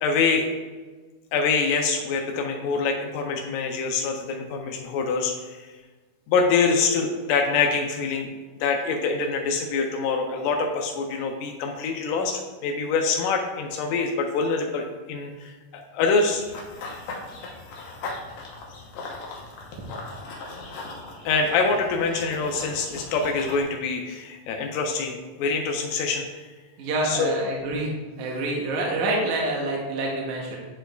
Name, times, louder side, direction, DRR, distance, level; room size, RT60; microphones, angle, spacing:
voice 1, 0.0-0.5 1.3-5.6 6.3-8.3 8.6-15.5 15.9-16.4 21.3-26.4 27.0-27.4, left 4 dB, 80° left, 2 dB, 2.2 m, -25 dB
Run / Bird vocalization bird call bird song, 16.2-23.6, left 3 dB, 65° left, 1.9 m, -39 dB
voice 2, 26.8-27.9 28.2-30.7, right 2 dB, 70° right, -2 dB, 2.1 m, -27 dB
9.9 x 4.5 x 2.3 m, 1.3 s
omnidirectional pair, 3.8 m